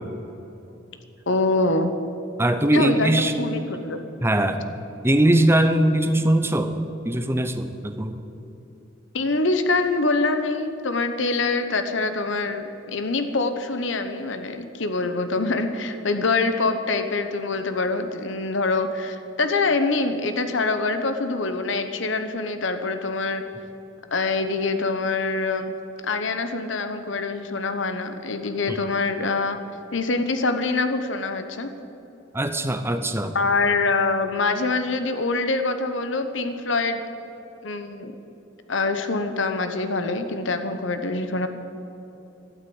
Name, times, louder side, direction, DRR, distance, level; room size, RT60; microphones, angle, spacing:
voice 1, 1.3-1.9 2.7-4.0 9.1-23.4 24.1-25.7 26.0-29.6 29.9-31.7 33.3-37.0 37.6-38.1 38.7-41.5, left 3 dB, 65° left, 8 dB, 0.9 m, -25 dB
voice 2, 2.4-3.3 4.2-4.8 5.0-6.7 7.0-8.2 28.7-28.8 32.3-33.4, right 1 dB, 10° right, 8 dB, 0.7 m, -21 dB
12.0 x 9.5 x 9.5 m, 3.0 s
head